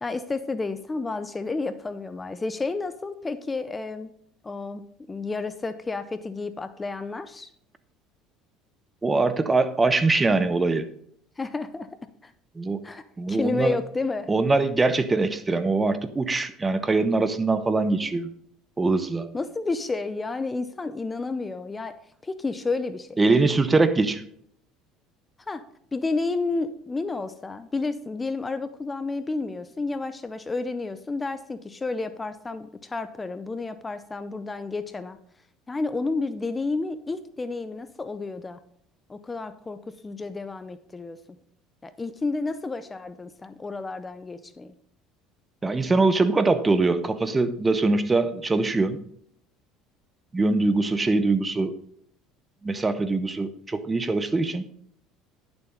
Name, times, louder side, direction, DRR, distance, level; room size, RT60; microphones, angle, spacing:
voice 1, 0.0-4.1 4.4-7.5 11.4-11.9 12.2-12.3 12.8-14.3 19.3-23.2 25.5-25.6 25.9-35.2 35.7-38.6 39.1-41.2 41.8-44.7, left 3 dB, 20° left, 12 dB, 0.6 m, -31 dB
voice 2, 9.0-10.9 12.6-12.9 13.2-13.8 14.3-18.3 18.8-19.3 23.2-24.2 45.6-49.0 50.3-51.7 52.6-54.6, right 3 dB, 20° right, 12 dB, 0.9 m, -23 dB
10.5 x 7.0 x 3.9 m, 0.66 s
supercardioid pair, 85°, 0 cm